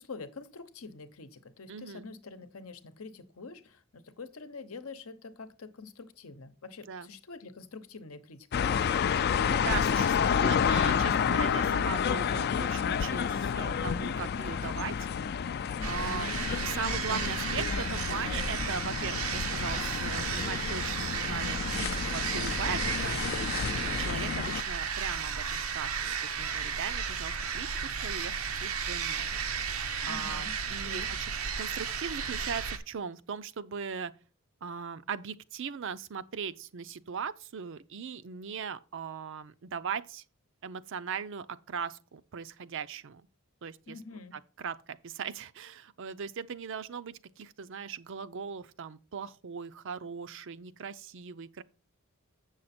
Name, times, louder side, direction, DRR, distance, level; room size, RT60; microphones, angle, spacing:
voice 1, 0.0-9.2 15.7-16.1 30.1-31.1 43.9-44.4, left 4 dB, 85° left, 0.9 m, -46 dB
voice 2, 1.7-2.0 6.9-7.1 9.6-15.0 15.8-29.4 30.0-31.3 31.6-34.1 34.6-40.2 40.6-43.2 43.6-44.0 44.3-44.8 45.0-51.6, right 6 dB, 60° right, 0.5 m, -39 dB
sound 1, 8.5-24.6, left 7 dB, 50° left, 0.4 m, -30 dB
sound 2, 15.8-32.8, right 6 dB, 85° right, 0.8 m, -34 dB
7.8 x 6.4 x 4.3 m
head